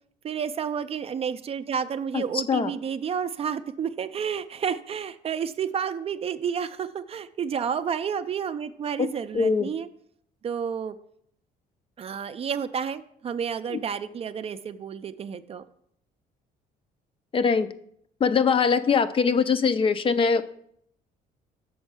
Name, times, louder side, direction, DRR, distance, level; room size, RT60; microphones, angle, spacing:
voice 1, 0.2-9.9 10.4-10.9 12.0-15.6, right 7 dB, 35° right, 11 dB, 0.4 m, -30 dB
voice 2, 9.3-9.7 13.7-13.8 17.3-17.7 18.2-20.4, left 5 dB, 30° left, 12 dB, 0.4 m, -22 dB
6.3 x 4.4 x 6.5 m, 0.68 s
cardioid pair, 110°, 17 cm